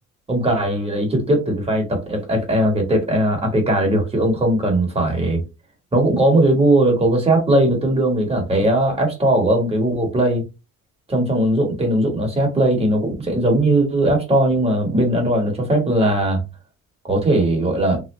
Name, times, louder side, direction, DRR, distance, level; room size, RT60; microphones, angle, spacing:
voice 1, 0.3-5.4 5.9-10.4 11.1-16.4 17.0-18.0, right 1 dB, 20° right, 1.3 m, -19 dB
3.2 x 2.6 x 3.0 m
cardioid pair, 120°, 31 cm